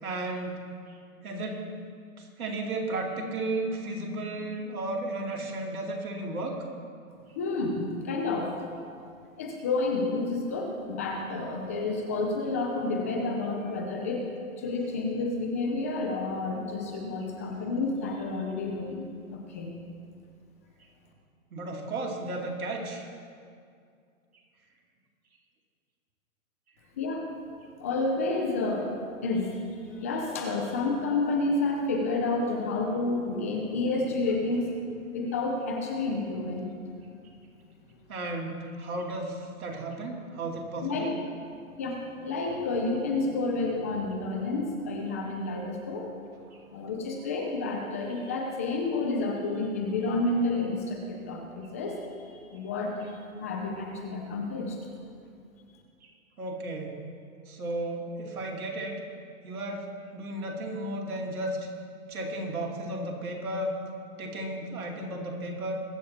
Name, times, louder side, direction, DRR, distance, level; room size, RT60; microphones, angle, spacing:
voice 1, 0.0-0.6 0.9-1.0 1.2-1.7 2.2-6.6 21.5-23.0 38.1-41.1 46.5-46.6 56.0-56.1 56.4-57.0 57.5-59.0 59.4-59.9 60.1-61.6 62.1-63.7 64.2-65.7, right 2 dB, 80° right, 0 dB, 2.5 m, -34 dB
voice 2, 7.4-8.5 9.4-14.3 14.6-19.7 27.0-27.3 27.8-28.9 29.2-34.7 35.1-36.7 40.8-41.1 41.8-46.1 46.7-54.8, left 3 dB, 10° left, 1 dB, 0.4 m, -30 dB
21.5 x 7.3 x 4.2 m, 2.3 s
hypercardioid pair, 150°, 42 cm